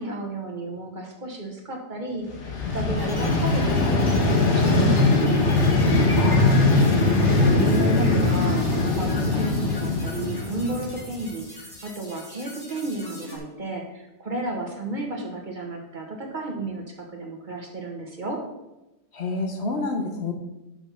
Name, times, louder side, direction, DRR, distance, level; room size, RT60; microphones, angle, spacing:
voice 1, 0.0-2.3 2.7-5.5 7.2-16.8 17.1-18.4, right 2 dB, 45° right, 1 dB, 1.3 m, -32 dB
Vehicle, 2.3-11.3, left 2 dB, 90° left, 1.5 m, -21 dB
sound 1, 3.0-13.4, left 2 dB, 20° left, 1.3 m, -39 dB
voice 2, 6.1-6.7 19.1-20.3, left 3 dB, 70° left, 4 dB, 1.3 m, -28 dB
6.1 x 5.4 x 5.6 m, 0.97 s
omnidirectional pair, 1.2 m